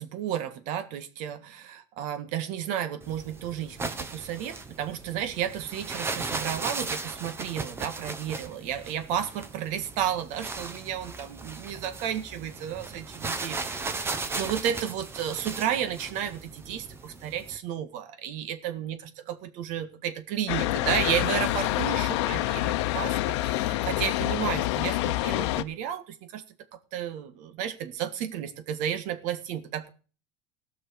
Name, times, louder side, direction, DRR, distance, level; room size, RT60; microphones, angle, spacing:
voice 1, 0.0-19.0 19.3-26.4 26.9-29.9, right 10 dB, 60° right, 1.7 m, -32 dB
sound 1, 3.0-17.6, right 3 dB, 15° right, 1.1 m, -37 dB
sound 2, 20.5-25.6, left 16 dB, 80° left, 0.8 m, -27 dB
18.0 x 6.2 x 6.3 m
supercardioid pair, 145°, 14 cm